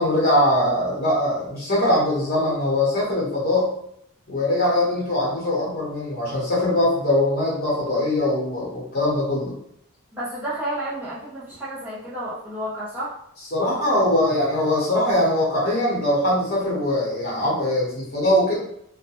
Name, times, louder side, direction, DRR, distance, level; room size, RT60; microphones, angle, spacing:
voice 1, 0.0-3.7 4.3-9.5 13.5-18.6, left 1 dB, 45° left, -6 dB, 0.9 m, -22 dB
voice 2, 10.1-13.2, right 1 dB, 10° right, -10 dB, 0.6 m, -31 dB
2.3 x 2.1 x 2.9 m, 0.73 s
head